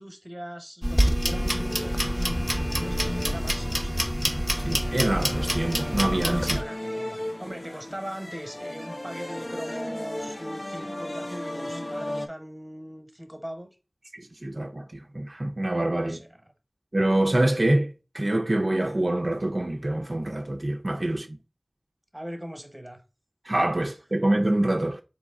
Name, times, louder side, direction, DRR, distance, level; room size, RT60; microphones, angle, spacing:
voice 1, 0.0-4.1 6.5-13.7 16.0-16.4 21.1-21.2 22.1-23.0, equal, 15° right, 1.0 m, -40 dB
sound 1, 0.8-6.6, equal, 5° left, 0.7 m, -26 dB
sound 2, 1.3-12.3, left 1 dB, 40° left, 0.5 m, -36 dB
voice 2, 4.6-6.6 14.1-16.2 16.9-21.4 23.5-25.0, right 1 dB, 60° right, 0.4 m, -26 dB
4.1 x 3.1 x 3.5 m
wide cardioid pair, 45°, 0 cm